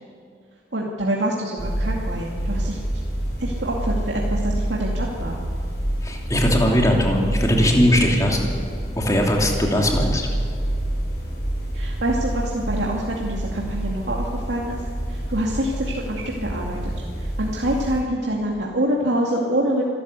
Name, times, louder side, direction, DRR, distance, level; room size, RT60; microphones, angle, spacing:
voice 1, 0.7-2.8 3.4-5.4 11.7-14.8 15.1-19.9, right 1 dB, 80° right, -3 dB, 2.3 m, -26 dB
sound 1, 1.6-18.0, right 1 dB, 65° left, 7.1 m, -27 dB
voice 2, 6.0-8.5 9.0-10.3, equal, 20° left, 0 dB, 2.9 m, -19 dB
26.5 x 12.5 x 8.3 m, 2.4 s
head